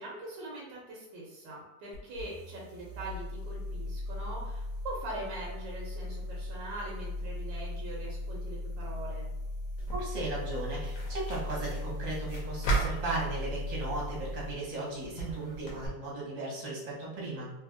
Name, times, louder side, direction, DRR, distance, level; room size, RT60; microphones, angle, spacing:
voice 1, 0.0-9.3, right 1 dB, 90° right, -3 dB, 1.5 m, -42 dB
sound 1, 1.9-14.6, left 1 dB, 70° right, 0.9 m, -38 dB
sound 2, 9.8-15.9, right 3 dB, 60° left, 1.0 m, -37 dB
voice 2, 9.9-17.5, right 2 dB, 30° right, -5 dB, 0.7 m, -36 dB
3.3 x 2.7 x 2.5 m, 1.0 s
omnidirectional pair, 2.0 m